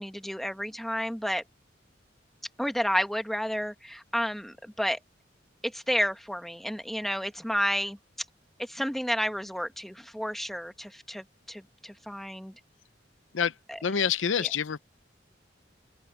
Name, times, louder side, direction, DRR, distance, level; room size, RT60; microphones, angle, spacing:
voice 1, 0.0-1.4 2.6-5.0 5.6-8.0 8.6-12.5 13.7-13.8 14.4-14.5, equal, ahead, 1.5 m, -31 dB
voice 2, 13.8-14.8, left 7 dB, 85° left, 0.6 m, -26 dB
open air
head